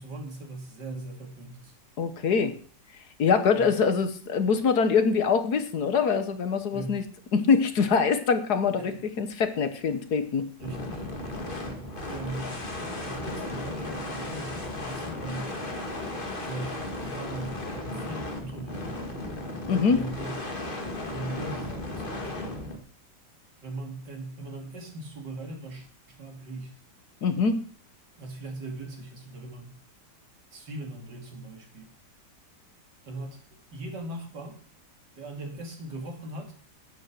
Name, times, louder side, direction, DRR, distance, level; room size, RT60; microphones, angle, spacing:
voice 1, 0.0-1.7 3.6-3.7 6.7-7.0 8.8-9.0 10.6-12.6 13.1-15.5 16.4-19.0 19.9-20.4 21.1-22.8 23.6-26.7 28.1-29.8 30.5-32.0 33.0-33.4 33.7-34.6 35.2-36.5, right 2 dB, 70° right, 3 dB, 3.3 m, -39 dB
voice 2, 2.0-2.5 3.2-7.0 7.3-10.5 19.7-20.0 27.2-27.6, left 5 dB, 60° left, 10 dB, 1.7 m, -24 dB
sound 1, 10.6-22.8, left 1 dB, 30° left, 2.1 m, -35 dB
11.0 x 9.4 x 6.3 m, 0.44 s
omnidirectional pair, 1.9 m